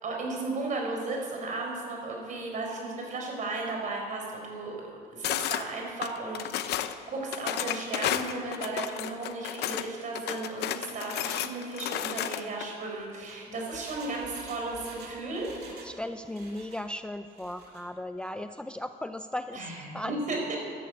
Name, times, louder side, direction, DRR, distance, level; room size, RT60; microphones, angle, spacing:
voice 1, 0.0-4.7 5.1-6.8 7.1-15.5 19.5-20.6, right 3 dB, 50° right, 0 dB, 4.5 m, -35 dB
sound 1, 5.2-5.6 6.0-6.9 7.3-9.9 10.1-12.6, left 12 dB, 75° left, 0.8 m, -32 dB
Engine, 13.0-16.0 16.2-16.8 17.3-17.8 18.2-18.3, right 4 dB, 75° right, 2.6 m, -48 dB
voice 2, 15.8-20.2, left 1 dB, 5° left, 9 dB, 0.4 m, -37 dB
13.0 x 12.0 x 8.2 m, 2.7 s
cardioid pair, 110°, 17 cm